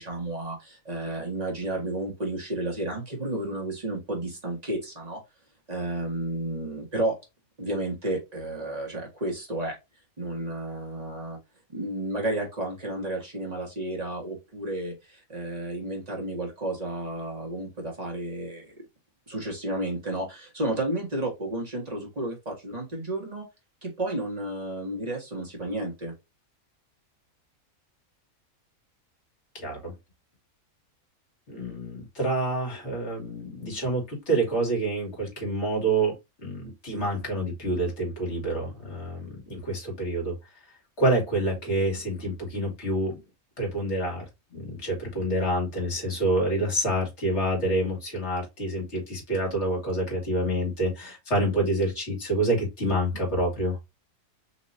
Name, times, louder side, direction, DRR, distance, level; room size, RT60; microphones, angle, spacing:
voice 1, 0.0-5.2 5.7-7.2 7.6-9.8 10.2-11.4 11.7-18.7 19.3-23.4 23.8-26.1, right 1 dB, 30° right, 1.5 m, -32 dB
voice 2, 29.5-29.9 31.5-36.1 36.4-40.3 41.0-43.2 43.6-44.2 44.5-53.8, right 1 dB, 50° left, 2.4 m, -27 dB
4.2 x 2.9 x 2.6 m
omnidirectional pair, 1.5 m